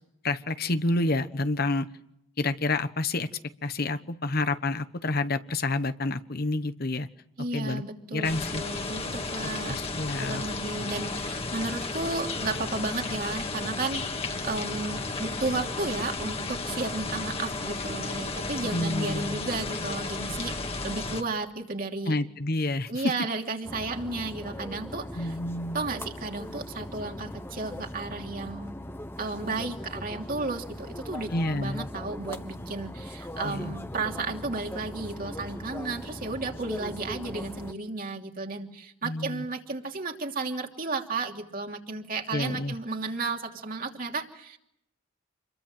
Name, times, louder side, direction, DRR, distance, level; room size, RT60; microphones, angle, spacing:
voice 1, 0.2-1.9 2.4-3.3 3.6-7.1 7.5-7.8 8.1-8.6 9.6-10.4 18.7-19.4 22.1-23.1 25.1-25.9 31.3-31.9 33.4-33.8 39.0-39.4 42.3-42.7, left 2 dB, 50° left, 11 dB, 1.1 m, -29 dB
voice 2, 7.4-9.8 10.2-22.1 22.9-25.4 25.7-28.8 29.2-44.6, right 3 dB, 45° right, 3 dB, 3.0 m, -33 dB
sound 1, 8.2-21.2, left 3 dB, 30° left, 2.1 m, -33 dB
sound 2, 23.7-37.7, left 1 dB, 10° left, 1.2 m, -40 dB
28.0 x 22.5 x 7.7 m, 0.79 s
head